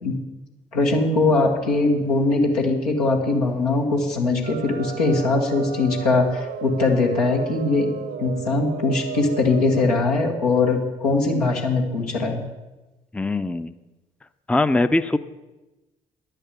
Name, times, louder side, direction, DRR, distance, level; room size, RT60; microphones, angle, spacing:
voice 1, 0.7-7.9 8.2-12.4, left 3 dB, 85° left, 0 dB, 1.4 m, -21 dB
sound 1, 4.4-10.1, right 8 dB, 70° right, 0.8 m, -34 dB
voice 2, 13.1-13.7 14.5-15.2, left 2 dB, 5° left, 12 dB, 0.5 m, -21 dB
10.0 x 6.6 x 7.5 m, 1.1 s
hypercardioid pair, 45°, 19 cm